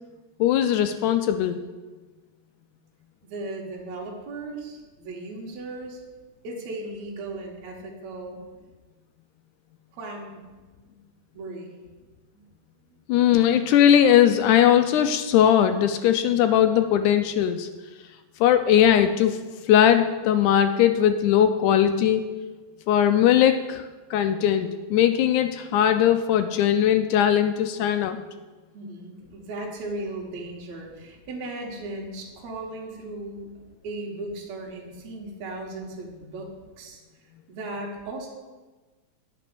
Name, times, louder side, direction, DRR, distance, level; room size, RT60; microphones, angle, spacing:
voice 1, 0.4-1.6 13.1-17.7 18.4-19.4 19.7-22.3 22.9-23.9 24.1-28.2, left 10 dB, 80° left, 8 dB, 1.8 m, -19 dB
voice 2, 3.2-6.0 6.4-8.4 9.9-10.5 10.8-11.0 11.3-11.7 12.3-12.5 28.7-33.5 33.8-36.5 36.8-37.0 37.5-38.3, right 2 dB, 60° right, -2 dB, 2.5 m, -36 dB
9.2 x 5.2 x 6.8 m, 1.3 s
omnidirectional pair, 3.9 m